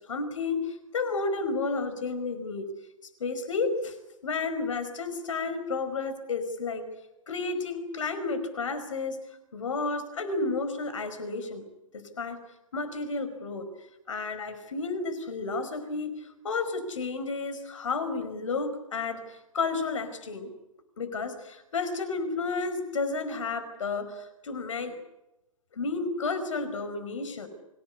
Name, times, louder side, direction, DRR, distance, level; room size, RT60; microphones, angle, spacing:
voice 1, 0.1-2.7 3.2-3.9 4.2-6.9 7.3-9.2 9.5-11.6 11.9-12.4 12.7-13.7 14.1-20.5 21.0-24.9 25.7-27.5, left 4 dB, 65° left, 10 dB, 5.1 m, -31 dB
25.5 x 17.0 x 9.7 m, 0.93 s
figure-of-eight pair, 120°, 17 cm